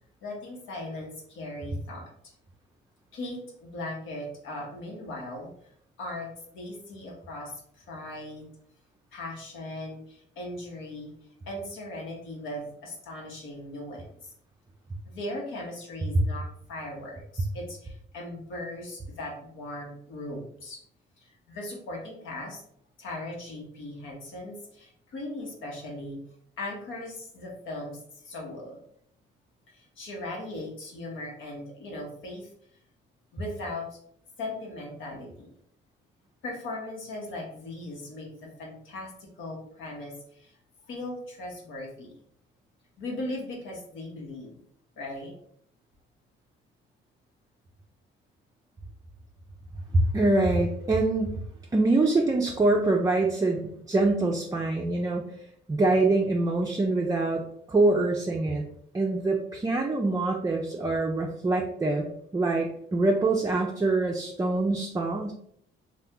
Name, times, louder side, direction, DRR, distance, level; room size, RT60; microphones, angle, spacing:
voice 1, 0.2-2.3 3.1-5.5 6.0-6.3 6.5-8.5 9.1-11.1 11.5-14.3 15.0-20.8 21.2-22.6 23.0-26.2 26.6-28.8 29.7-32.5 33.3-34.0 34.4-35.5 36.4-38.3 38.6-40.6 40.9-42.1 43.0-44.6 45.0-45.3, left 1 dB, 80° left, -1 dB, 1.0 m, -38 dB
voice 2, 49.9-51.4 51.7-55.2 55.7-57.4 57.7-58.6 58.9-65.3, right 2 dB, 15° right, 0 dB, 0.4 m, -24 dB
2.8 x 2.3 x 3.5 m, 0.67 s
cardioid pair, 90°, 20 cm